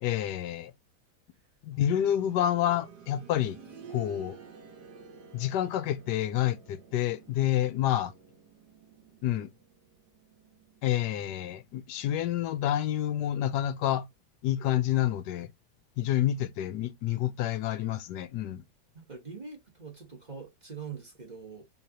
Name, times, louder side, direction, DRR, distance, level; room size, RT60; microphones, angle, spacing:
voice 1, 0.0-0.7 1.6-3.6 3.9-4.4 5.3-8.1 9.2-9.5 10.8-14.1 14.4-15.5 16.0-18.6, left 12 dB, 85° left, 1.2 m, -28 dB
sound 1, 1.7-12.5 12.8-12.9 13.8-13.9, right 6 dB, 70° right, 1.8 m, -52 dB
voice 2, 18.9-21.7, right 5 dB, 25° right, 1.6 m, -43 dB
3.8 x 3.0 x 2.9 m
omnidirectional pair, 1.8 m